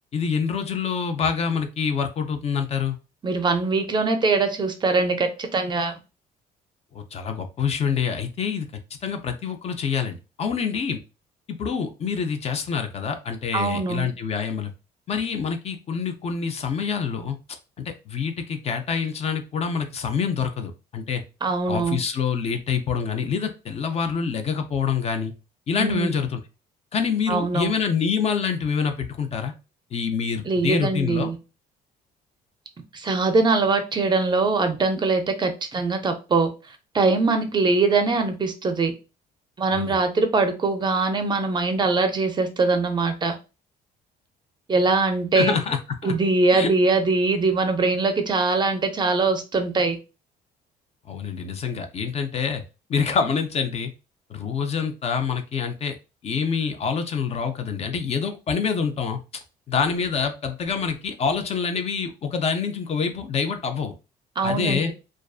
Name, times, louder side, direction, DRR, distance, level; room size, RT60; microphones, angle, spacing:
voice 1, 0.1-3.0 6.9-8.7 9.0-11.0 11.5-14.7 15.1-17.4 17.8-21.2 21.7-25.3 25.7-26.4 26.9-29.5 29.9-31.3 39.7-40.0 45.3-46.1 46.5-46.7 51.1-52.6 52.9-53.9 54.3-55.9 56.2-59.2 59.7-63.9 64.4-64.9, left 6 dB, 40° left, 6 dB, 0.4 m, -26 dB
voice 2, 3.2-6.0 13.5-14.1 21.4-22.0 25.8-26.1 27.3-27.7 30.4-31.4 32.9-36.5 36.9-38.9 39.6-43.4 44.7-45.6 46.0-50.0 64.4-64.9, right 3 dB, 25° right, 7 dB, 0.4 m, -22 dB
2.4 x 2.3 x 2.3 m, 0.30 s
cardioid pair, 110°, 17 cm